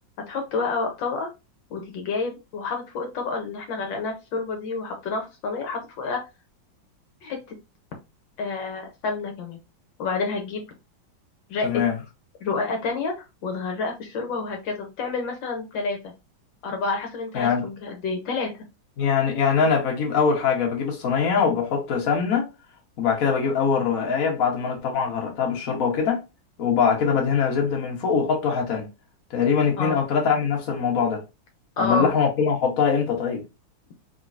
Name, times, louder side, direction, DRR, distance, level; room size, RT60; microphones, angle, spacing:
voice 1, 0.3-1.3 1.7-6.2 7.2-7.4 8.4-9.6 10.0-10.6 11.5-11.7 12.4-16.0 16.6-18.5 29.8-30.0 31.8-32.1, left 4 dB, 75° left, 1.6 m, -29 dB
voice 2, 11.6-12.0 17.3-17.7 19.0-22.5 23.0-26.2 26.6-28.9 29.3-31.2 31.8-33.4, left 6 dB, 50° left, 1.5 m, -22 dB
3.9 x 3.6 x 2.6 m
omnidirectional pair, 2.1 m